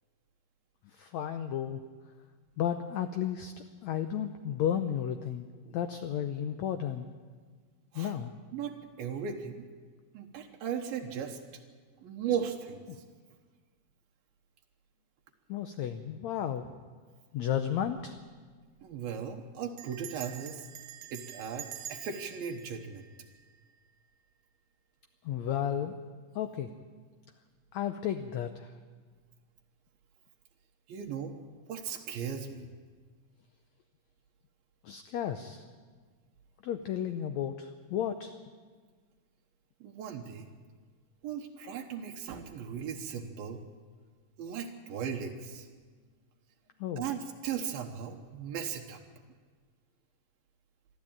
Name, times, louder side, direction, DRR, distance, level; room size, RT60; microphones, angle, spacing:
voice 1, 0.9-1.8 2.6-3.5 3.8-7.1 8.0-8.3 12.9-13.0 15.5-16.6 17.3-18.2 25.2-26.0 26.3-26.7 27.7-28.7 34.8-35.6 36.6-38.4 46.8-47.0, left 9 dB, 85° left, 8 dB, 1.6 m, -33 dB
voice 2, 8.5-9.7 10.1-11.4 12.0-13.0 18.8-20.6 21.1-23.0 30.9-31.4 31.7-32.7 39.8-40.5 41.2-43.6 44.4-45.7 47.0-49.0, right 7 dB, 85° right, 2 dB, 3.0 m, -37 dB
Bell, 18.6-19.0 19.8-23.9, right 9 dB, 65° right, 2.0 m, -47 dB
23.0 x 13.5 x 8.8 m, 1.5 s
omnidirectional pair, 4.1 m